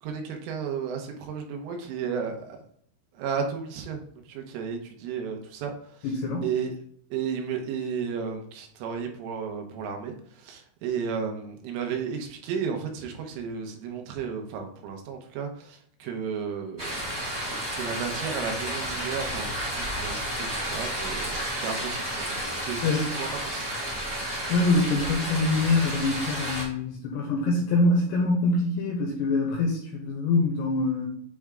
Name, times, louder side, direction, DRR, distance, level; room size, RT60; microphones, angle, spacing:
voice 1, 0.0-2.6 3.1-4.0 4.3-6.1 6.4-6.7 7.1-17.1 17.4-22.4 22.6-23.9, right 6 dB, 80° right, 3 dB, 3.4 m, -33 dB
voice 2, 6.0-6.4 22.8-23.1 24.5-31.1, left 2 dB, 80° left, 0 dB, 2.6 m, -24 dB
sound 1, 16.8-26.6, equal, 25° right, 0.5 m, -32 dB
8.6 x 3.5 x 3.6 m, 0.63 s
omnidirectional pair, 5.9 m